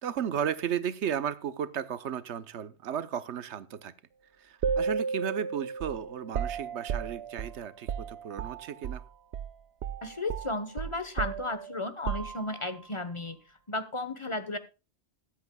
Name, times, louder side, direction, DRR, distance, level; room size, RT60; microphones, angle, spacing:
voice 1, 0.0-3.9 4.4-9.0, right 8 dB, 90° right, 1.1 m, -34 dB
sound 1, 4.6-9.1 9.3-9.5 9.8-12.8, right 6 dB, 70° right, 0.9 m, -34 dB
voice 2, 10.0-14.6, left 2 dB, 30° left, 1.0 m, -34 dB
21.0 x 8.3 x 2.2 m
omnidirectional pair, 1.1 m